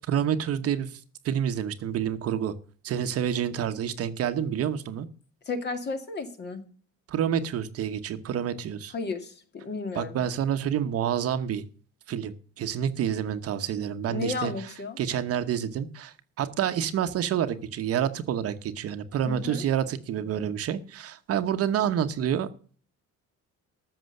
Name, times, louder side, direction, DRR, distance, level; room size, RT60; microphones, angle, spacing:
voice 1, 0.1-1.0 1.2-2.5 2.8-5.1 7.1-8.9 9.9-11.6 12.1-14.5 15.0-22.5, right 9 dB, 50° right, 1.1 m, -28 dB
voice 2, 5.5-6.6 8.9-10.2 14.1-15.0 19.3-19.6, left 3 dB, 35° left, 2.1 m, -33 dB
13.5 x 7.1 x 6.6 m
cardioid pair, 175°, 30 cm